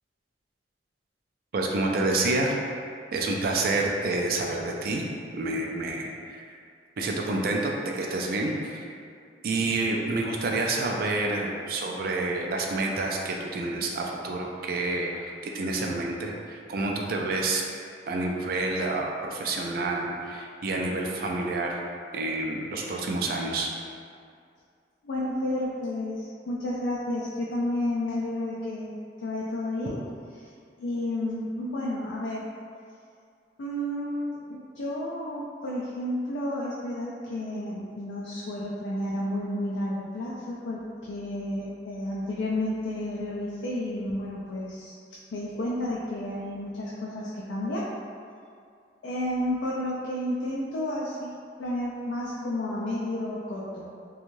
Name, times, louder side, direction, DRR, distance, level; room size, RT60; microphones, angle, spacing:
voice 1, 1.5-2.6 3.1-5.0 5.3-6.4 7.0-8.8 9.4-17.6 18.1-21.8 22.1-23.7, right 2 dB, 55° right, 0 dB, 0.3 m, -28 dB
voice 2, 25.0-30.0 30.4-30.5 30.8-32.4 33.6-45.0 45.3-47.9 49.0-51.3 51.6-53.8, left 1 dB, 85° left, -5 dB, 0.4 m, -31 dB
3.0 x 2.3 x 2.6 m, 2.3 s
head